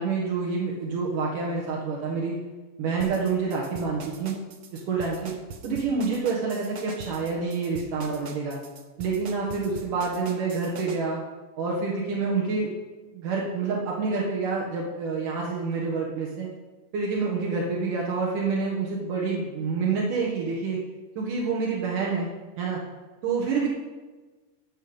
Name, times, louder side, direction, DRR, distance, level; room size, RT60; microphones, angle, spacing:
voice 1, 0.0-2.4 2.8-4.4 4.7-5.3 5.6-8.6 9.0-11.2 11.6-12.7 13.1-16.5 16.9-20.8 21.2-22.3 22.6-22.8 23.2-23.7, right 4 dB, 85° right, -4 dB, 3.2 m, -27 dB
sound 1, 3.0-11.0, right 4 dB, 65° right, 1.3 m, -42 dB
13.0 x 5.2 x 8.2 m, 1.2 s
omnidirectional pair, 3.6 m